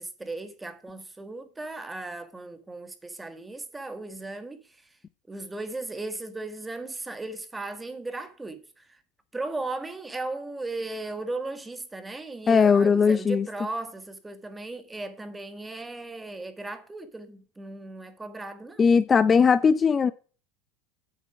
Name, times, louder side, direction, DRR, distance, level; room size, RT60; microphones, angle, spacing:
voice 1, 0.0-4.9 5.3-9.0 9.3-18.9, right 2 dB, 10° right, 1.5 m, -36 dB
voice 2, 12.5-13.5 18.8-20.1, left 6 dB, 25° left, 0.5 m, -19 dB
8.3 x 6.6 x 5.9 m
supercardioid pair, 110°, 0 cm